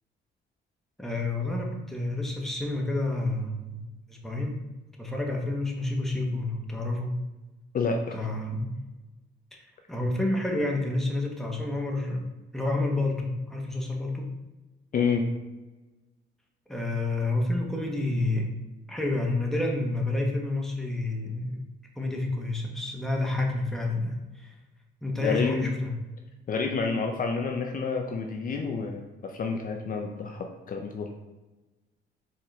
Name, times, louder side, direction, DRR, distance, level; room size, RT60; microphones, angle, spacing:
voice 1, 1.0-4.6 5.0-7.2 8.1-8.7 9.5-9.6 9.9-12.2 12.5-14.3 16.7-18.5 18.9-21.6 22.0-24.5 25.0-25.9, left 2 dB, ahead, 0 dB, 0.8 m, -29 dB
voice 2, 7.7-8.2 14.9-15.3 25.2-25.7 26.5-31.1, left 5 dB, 45° left, 3 dB, 0.5 m, -29 dB
4.4 x 3.7 x 3.1 m, 1.1 s
cardioid pair, 90°, 20 cm